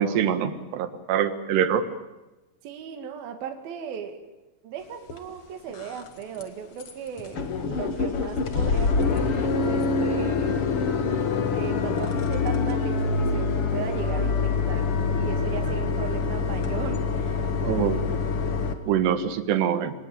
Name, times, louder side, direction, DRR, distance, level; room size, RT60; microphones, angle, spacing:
voice 1, 0.0-1.8 17.6-18.0 18.9-19.9, right 8 dB, 90° right, 11 dB, 3.7 m, -24 dB
voice 2, 2.6-4.2 4.6-10.5 11.6-14.9 15.1-17.5, right 7 dB, 65° right, 6 dB, 3.8 m, -37 dB
sound 1, 5.1-5.2 5.7-6.1 6.4-6.5 6.8-6.9 7.2-18.7, left 4 dB, 50° left, 1.9 m, -25 dB
26.0 x 18.5 x 9.2 m, 1.1 s
omnidirectional pair, 4.6 m